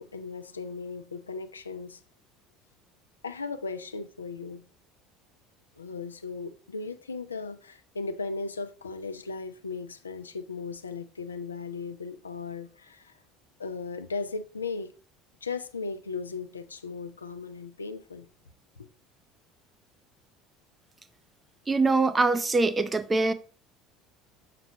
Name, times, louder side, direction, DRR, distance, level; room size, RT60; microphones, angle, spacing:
voice 1, 0.0-2.0 3.2-4.6 5.8-13.2 13.6-14.9 15.4-18.3 18.8-18.9, left 4 dB, 90° left, 0.4 m, -37 dB
voice 2, 21.7-23.3, right 3 dB, 25° right, 0.7 m, -23 dB
6.7 x 6.0 x 2.8 m
hypercardioid pair, 65°, 0 cm